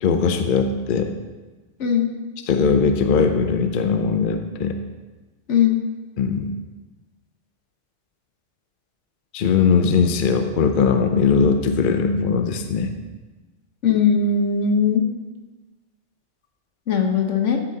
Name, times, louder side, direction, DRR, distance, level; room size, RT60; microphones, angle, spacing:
voice 1, 0.0-1.1 2.5-4.8 6.2-6.5 9.3-12.9, left 5 dB, 50° left, 7 dB, 0.8 m, -20 dB
voice 2, 13.8-15.0 16.9-17.6, left 6 dB, 80° left, 3 dB, 1.4 m, -19 dB
12.5 x 8.8 x 2.8 m, 1.2 s
omnidirectional pair, 1.2 m